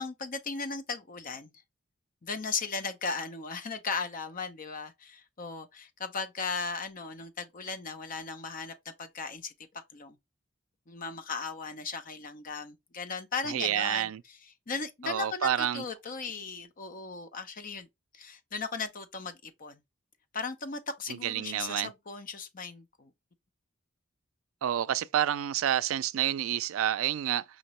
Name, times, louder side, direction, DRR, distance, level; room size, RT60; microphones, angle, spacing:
voice 1, 0.0-1.5 2.2-9.5 9.9-10.2 10.9-14.4 14.7-17.9 18.1-19.8 20.3-23.1, left 4 dB, 40° left, 0.7 m, -37 dB
voice 2, 13.5-14.2 15.0-15.8 21.1-21.9 24.6-27.4, right 11 dB, 70° right, 0.3 m, -29 dB
5.1 x 2.9 x 3.0 m
head